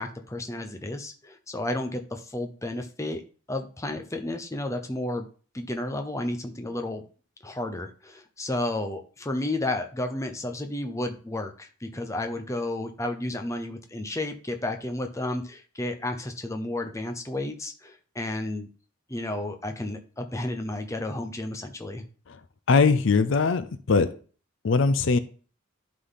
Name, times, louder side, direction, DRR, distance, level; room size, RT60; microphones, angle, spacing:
voice 1, 0.0-3.2 3.5-5.3 5.5-7.0 7.4-18.7 19.1-22.0, left 1 dB, 15° left, 5 dB, 0.8 m, -32 dB
voice 2, 22.7-24.1 24.6-25.2, left 4 dB, 60° left, 11 dB, 0.5 m, -21 dB
11.5 x 3.9 x 4.0 m, 0.40 s
head